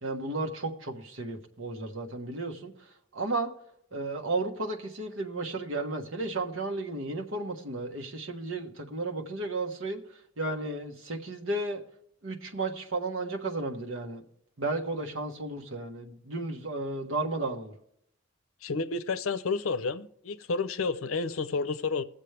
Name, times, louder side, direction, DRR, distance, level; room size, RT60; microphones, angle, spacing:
voice 1, 0.0-2.7 3.1-3.5 3.9-10.0 10.4-11.8 12.2-14.2 14.6-17.7, right 2 dB, 75° right, 1.4 m, -33 dB
voice 2, 18.6-22.0, left 4 dB, 90° left, 0.6 m, -30 dB
20.5 x 7.4 x 3.4 m
head